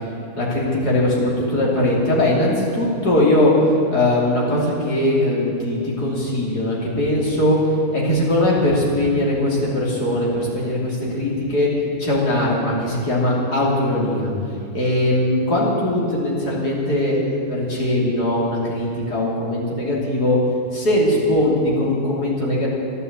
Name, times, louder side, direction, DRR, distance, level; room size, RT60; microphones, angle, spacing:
voice 1, 0.4-3.6 3.9-7.6 7.9-11.7 12.0-14.3 14.7-17.2 17.5-20.4 20.7-22.7, left 1 dB, 90° left, -4 dB, 3.7 m, -20 dB
13.0 x 11.0 x 8.3 m, 2.6 s
omnidirectional pair, 1.6 m